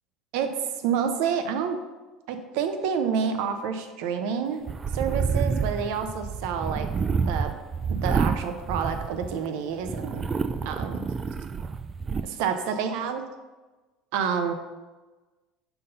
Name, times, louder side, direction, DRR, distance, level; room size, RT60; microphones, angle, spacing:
voice 1, 0.8-1.8 2.3-4.6 4.9-6.9 7.2-7.5 8.0-10.3 10.6-11.0 12.2-13.2 14.1-14.5, right 7 dB, 75° right, 8 dB, 0.6 m, -28 dB
sound 1, 4.7-9.5 9.8-12.2, right 5 dB, 25° right, 0.3 m, -28 dB
5.8 x 5.5 x 3.9 m, 1.2 s
cardioid pair, 130°, 0 cm